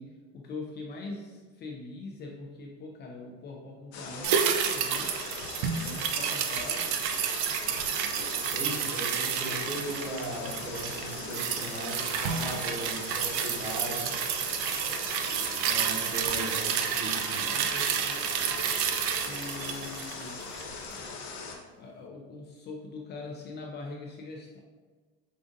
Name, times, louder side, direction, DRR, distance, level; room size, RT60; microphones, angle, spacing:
voice 1, 0.0-5.2 5.7-6.9 17.4-18.2 19.2-20.5 21.8-24.6, left 3 dB, 35° left, 0 dB, 0.4 m, -42 dB
sound 1, 3.9-21.6, left 4 dB, 80° left, 0.8 m, -40 dB
sound 2, 4.2-20.7 21.0-21.1, right 8 dB, 80° right, 0.5 m, -30 dB
voice 2, 8.5-14.2 15.6-17.5, right 1 dB, 30° right, -2 dB, 1.0 m, -38 dB
5.1 x 2.4 x 2.5 m, 1.4 s
cardioid pair, 130°, 32 cm